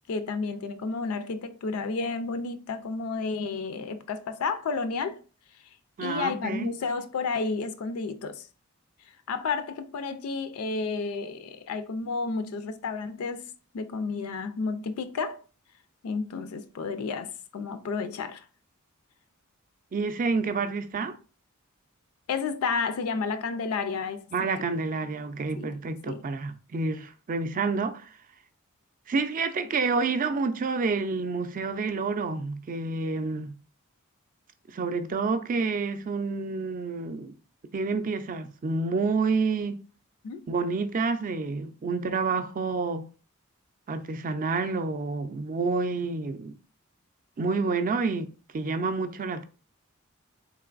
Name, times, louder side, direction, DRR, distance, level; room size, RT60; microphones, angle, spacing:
voice 1, 0.1-5.2 6.0-8.5 9.3-15.4 16.0-18.4 22.3-24.2 25.6-25.8 26.0-26.2 40.2-40.4, left 4 dB, 85° left, 0.4 m, -31 dB
voice 2, 6.0-6.7 19.9-21.2 24.3-28.1 29.1-33.5 34.7-37.3 37.7-39.8 40.5-43.1 43.9-46.5 47.4-49.5, right 4 dB, 40° right, 0.4 m, -29 dB
3.8 x 3.3 x 2.4 m
head